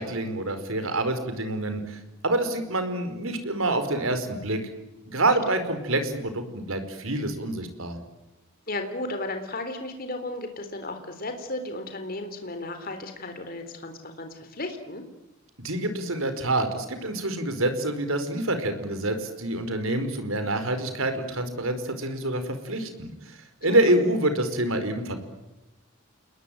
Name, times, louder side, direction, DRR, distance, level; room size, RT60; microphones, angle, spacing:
voice 1, 0.0-4.6 5.0-8.0 15.6-23.1 23.6-25.2, right 1 dB, 70° right, 9 dB, 5.0 m, -27 dB
voice 2, 8.7-15.0 23.7-23.8, left 2 dB, 45° left, 7 dB, 3.7 m, -34 dB
29.0 x 21.0 x 9.2 m, 0.99 s
head